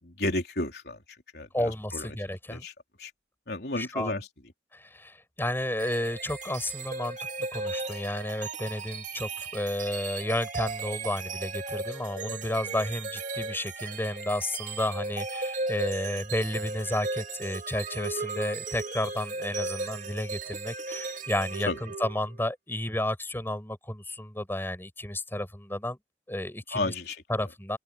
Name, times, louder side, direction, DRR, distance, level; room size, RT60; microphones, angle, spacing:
voice 1, 0.0-1.0 1.3-2.2 2.5-2.7 3.0-3.1 3.5-4.3 21.7-21.8 26.7-27.5, left 2 dB, 65° left, 4.0 m, -32 dB
voice 2, 1.5-2.6 3.8-4.1 4.7-7.2 7.5-26.0 26.3-26.9 27.3-27.8, left 1 dB, 15° left, 5.6 m, -32 dB
sound 1, 5.8-22.4, right 3 dB, 45° right, 2.8 m, -36 dB
open air
head